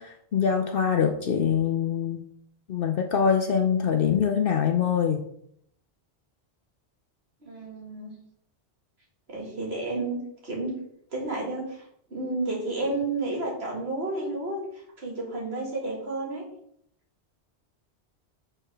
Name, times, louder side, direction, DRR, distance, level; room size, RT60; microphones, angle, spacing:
voice 1, 0.0-2.2 2.7-5.2, left 7 dB, 60° left, 5 dB, 0.8 m, -24 dB
voice 2, 7.4-8.1 9.3-10.2 10.4-10.7 11.1-11.8 12.1-14.6 15.0-16.5, right 2 dB, 65° right, -2 dB, 2.3 m, -31 dB
5.0 x 4.4 x 5.9 m, 0.71 s
omnidirectional pair, 1.1 m